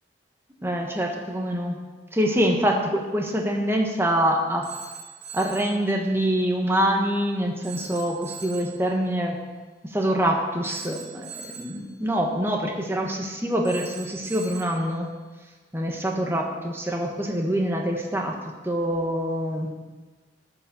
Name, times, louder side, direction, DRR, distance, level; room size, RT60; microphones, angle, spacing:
voice 1, 0.6-1.8 2.1-4.6 5.3-9.4 9.8-15.1 15.7-18.3 18.6-19.7, equal, 15° right, 1 dB, 1.3 m, -25 dB
Telephone, 4.6-5.8 7.6-8.8 10.6-11.8 13.6-14.8, right 6 dB, 65° right, 2.9 m, -41 dB
13.0 x 5.4 x 7.0 m, 1.3 s
head